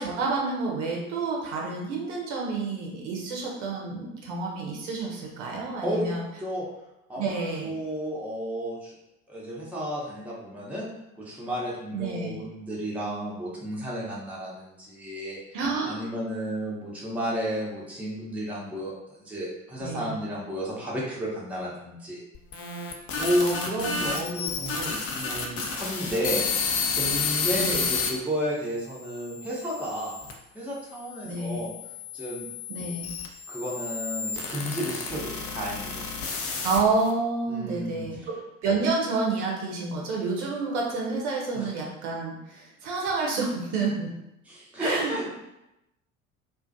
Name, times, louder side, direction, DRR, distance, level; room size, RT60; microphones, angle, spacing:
voice 1, 0.0-6.2 7.1-7.7 11.9-12.4 15.5-16.0 19.8-20.2 23.4-24.4 27.5-27.9 31.2-31.6 32.7-33.1 36.6-44.1 44.8-45.3, right 3 dB, 60° right, -1 dB, 0.7 m, -29 dB
voice 2, 5.8-6.1 6.4-6.7 7.1-8.9 9.3-10.9 11.2-15.5 15.8-22.2 23.2-26.4 27.0-30.2 30.5-31.7 32.1-32.5 33.5-36.0 37.5-38.3 41.5-41.7 44.5-45.3, equal, 5° right, -6 dB, 0.7 m, -32 dB
sound 1, 22.3-28.1 28.8-30.3 31.1-37.1, left 5 dB, 35° left, 0.5 m, -31 dB
2.4 x 2.2 x 2.5 m, 0.89 s
figure-of-eight pair, 60°, 40 cm